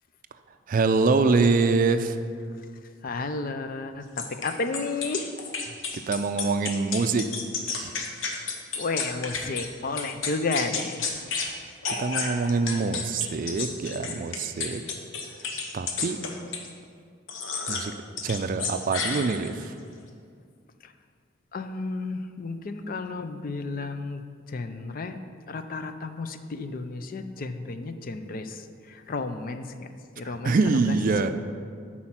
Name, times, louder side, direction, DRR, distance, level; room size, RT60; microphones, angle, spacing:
voice 1, 0.7-2.2 5.9-7.3 7.7-7.9 11.4-11.6 12.0-14.8 15.7-16.2 17.7-17.9 18.2-19.7 30.2-31.3, right 4 dB, 45° right, 9 dB, 0.4 m, -25 dB
voice 2, 3.0-5.3 8.3-8.5 8.8-11.1 20.8-20.9 21.5-24.2 24.5-25.2 25.5-29.9 30.2-31.0, left 3 dB, 45° left, 9 dB, 0.5 m, -32 dB
sound 1, 4.2-9.7 10.0-11.5 11.8-16.7 17.3-17.9 18.2-19.6, left 5 dB, 85° left, 1.0 m, -31 dB
8.8 x 4.3 x 5.8 m, 2.2 s
head